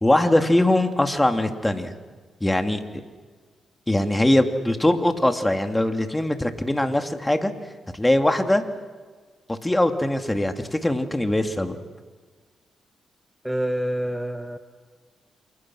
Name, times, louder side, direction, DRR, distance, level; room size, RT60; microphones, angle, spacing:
voice 1, 0.0-1.9 2.4-2.8 3.9-7.5 7.9-8.6 9.5-11.8, left 1 dB, 15° left, 5 dB, 2.8 m, -21 dB
voice 2, 13.4-14.6, equal, 5° right, 6 dB, 1.9 m, -27 dB
29.0 x 27.5 x 6.4 m, 1.4 s
cardioid pair, 60°, 0 cm